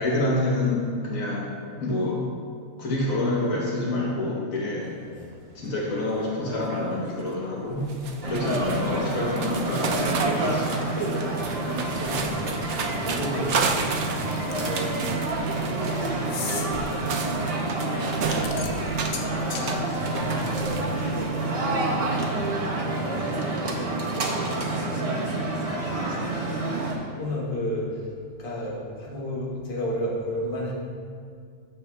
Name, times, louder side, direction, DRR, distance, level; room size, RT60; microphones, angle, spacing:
voice 1, 0.0-1.5 1.8-2.3 2.8-5.0 5.5-7.9 8.2-11.0, left 2 dB, 80° left, -4 dB, 1.4 m, -27 dB
voice 2, 5.1-5.6 11.3-11.5 11.9-18.9 19.5-28.1 28.4-30.7, left 1 dB, 45° left, -4 dB, 1.2 m, -35 dB
sound 1, 5.3-5.4 5.7-6.0 6.4-7.4 7.6-21.3, right 5 dB, 65° right, 0.8 m, -33 dB
sound 2, 8.2-27.0, right 2 dB, 35° right, 0.6 m, -28 dB
sound 3, 14.5-14.9 16.2-16.7 18.1-19.7, left 6 dB, 60° left, 0.6 m, -35 dB
8.9 x 6.8 x 2.2 m, 2.2 s
omnidirectional pair, 1.4 m